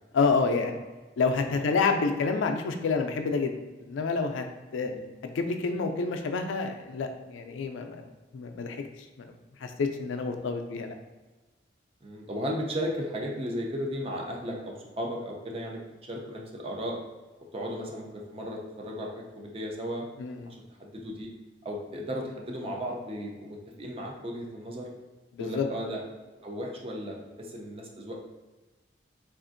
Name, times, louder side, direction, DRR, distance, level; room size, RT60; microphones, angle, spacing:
voice 1, 0.1-0.8 1.2-3.5 3.8-4.4 4.7-4.9 5.2-8.0 8.3-8.8 9.2-9.3 9.6-10.9 20.2-20.5 25.3-25.7, left 4 dB, 85° left, 5 dB, 0.4 m, -28 dB
voice 2, 10.3-10.8 12.0-17.0 17.5-20.1 20.5-21.3 21.6-24.9 25.4-26.0 26.4-28.1, equal, 30° right, 0 dB, 0.5 m, -35 dB
3.5 x 2.4 x 2.5 m, 1.2 s
head